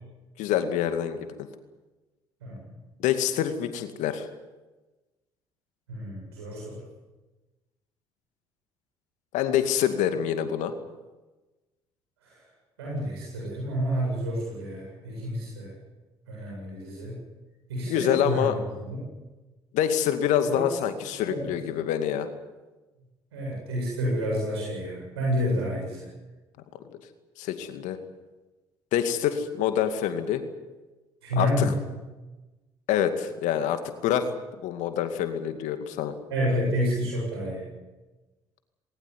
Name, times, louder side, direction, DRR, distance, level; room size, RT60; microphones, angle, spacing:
voice 1, 0.4-1.3 3.0-4.3 9.3-10.7 17.9-18.5 19.7-22.3 27.4-28.0 28.9-30.4 31.4-31.7 32.9-34.3 34.6-36.1, left 10 dB, 70° left, 9 dB, 2.3 m, -26 dB
voice 2, 2.4-2.7 5.9-6.8 12.2-12.4 12.8-15.7 16.3-17.2 17.7-18.5 18.8-19.0 20.5-20.6 21.0-21.5 23.3-26.1 31.2-31.7 36.3-37.7, equal, 85° right, -3 dB, 7.9 m, -29 dB
20.5 x 19.0 x 9.9 m, 1.2 s
hypercardioid pair, 50°, 13 cm